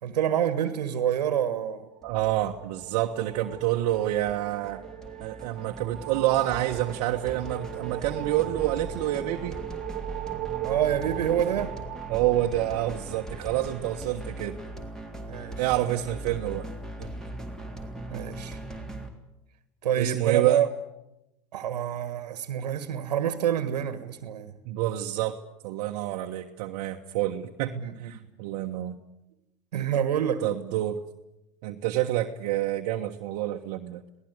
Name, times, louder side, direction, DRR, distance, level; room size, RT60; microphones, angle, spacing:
voice 1, 0.0-1.9 10.6-11.7 15.3-15.6 18.1-18.6 19.8-20.7 21.5-24.5 27.7-28.1 29.7-30.4, right 9 dB, 80° right, 1.7 m, -27 dB
sound 1, 1.9-13.3, right 16 dB, 40° right, 2.0 m, -39 dB
sound 2, 2.0-19.1, right 2 dB, 5° left, 3.5 m, -40 dB
voice 2, 2.0-4.8 5.2-9.6 12.1-14.5 15.6-16.7 17.0-17.1 20.0-20.6 24.6-25.4 25.6-29.0 30.4-31.0 31.6-34.0, right 14 dB, 55° right, 1.4 m, -28 dB
27.0 x 18.5 x 8.2 m
hypercardioid pair, 100°, 21 cm